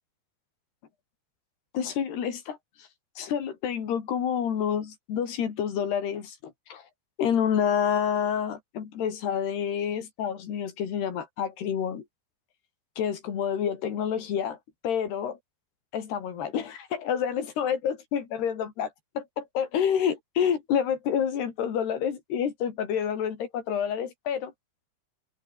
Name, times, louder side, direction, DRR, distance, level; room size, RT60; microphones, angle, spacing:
voice 1, 1.7-2.9 3.2-6.9 7.2-12.1 13.0-14.6 14.8-15.4 15.9-24.5, left 8 dB, 80° left, 5.4 m, -28 dB
omnidirectional pair, 4.7 m